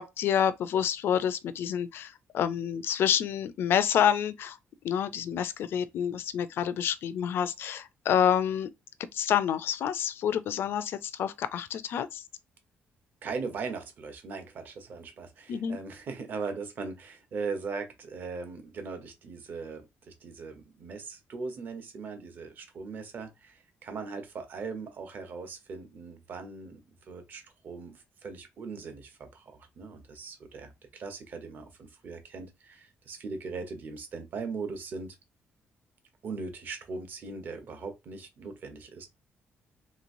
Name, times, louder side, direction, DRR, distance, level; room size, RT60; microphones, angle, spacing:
voice 1, 0.0-4.6 4.8-8.7 9.1-12.2 15.5-15.8, left 9 dB, 60° left, 0.4 m, -28 dB
voice 2, 13.2-26.8 27.1-35.2 36.2-39.1, right 4 dB, 45° right, 0.8 m, -39 dB
3.2 x 3.0 x 2.6 m
cardioid pair, 170°, 4 cm